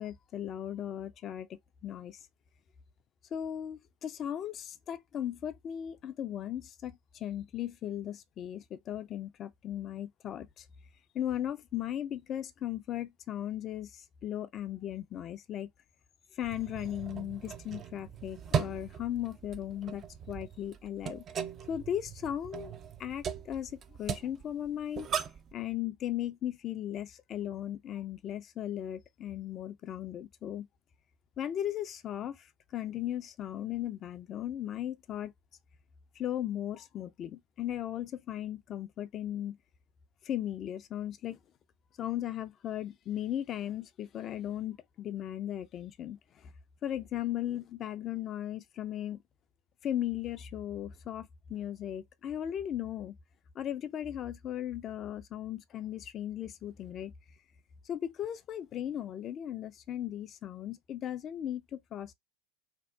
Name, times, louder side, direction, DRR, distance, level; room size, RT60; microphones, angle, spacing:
voice 1, 0.0-2.2 3.3-10.7 11.1-15.7 16.4-21.2 21.7-22.7 23.0-25.1 25.5-30.7 31.4-32.5 32.7-35.3 36.2-39.6 40.2-41.4 42.0-46.5 46.8-49.2 49.8-53.1 53.6-57.1 57.9-62.1, left 11 dB, 40° left, 0.4 m, -37 dB
sound 1, 16.4-25.5, right 7 dB, 35° right, 0.4 m, -38 dB
2.6 x 2.0 x 2.4 m
hypercardioid pair, 80°, 0 cm